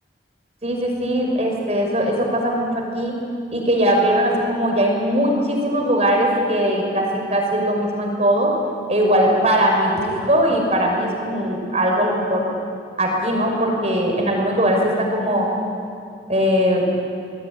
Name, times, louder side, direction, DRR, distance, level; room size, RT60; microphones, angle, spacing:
voice 1, 0.6-3.1 3.5-8.5 8.9-12.5 13.0-15.5 16.3-16.8, equal, 35° right, 1 dB, 6.0 m, -20 dB
28.5 x 21.0 x 9.9 m, 2.5 s
head